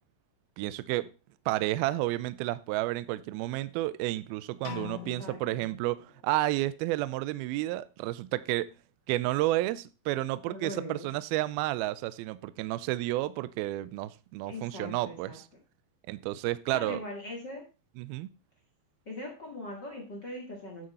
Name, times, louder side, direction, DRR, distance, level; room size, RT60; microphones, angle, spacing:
voice 1, 0.6-1.1 1.5-8.7 9.1-15.4 16.1-17.0 18.0-18.3, right 17 dB, 80° right, 15 dB, 2.3 m, -31 dB
sound 1, 4.6-6.5, left 12 dB, 65° left, 3.1 m, -44 dB
voice 2, 5.0-5.7 10.4-11.1 14.5-15.4 16.7-17.7 19.1-20.9, left 1 dB, 40° left, 0 dB, 1.7 m, -41 dB
9.9 x 7.6 x 4.1 m, 0.31 s
omnidirectional pair, 4.7 m